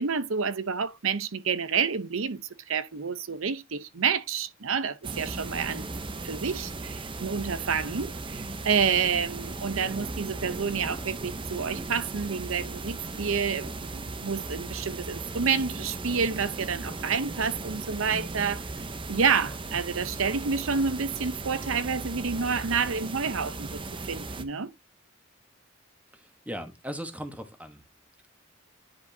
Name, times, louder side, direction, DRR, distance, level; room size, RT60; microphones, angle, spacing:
voice 1, 0.0-2.4 2.7-5.9 6.2-18.6 19.1-23.8 24.1-24.7, right 6 dB, 75° right, 0.8 m, -29 dB
sound 1, 5.0-24.4, right 3 dB, 25° right, 0.7 m, -37 dB
voice 2, 26.1-27.8, equal, 5° right, 1.1 m, -38 dB
10.0 x 5.1 x 2.7 m
head